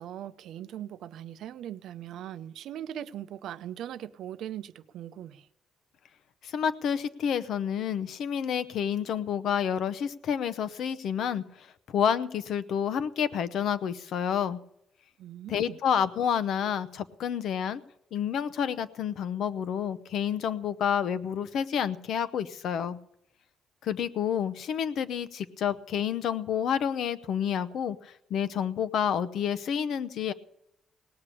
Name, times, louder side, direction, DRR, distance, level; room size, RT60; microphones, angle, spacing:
voice 1, 0.0-5.5 15.2-15.8, right 11 dB, 80° right, 0.6 m, -40 dB
voice 2, 6.4-14.6 15.5-17.8 18.1-23.0 23.8-30.3, left 8 dB, 70° left, 0.8 m, -29 dB
18.5 x 6.8 x 8.5 m
cardioid pair, 90°, 0 cm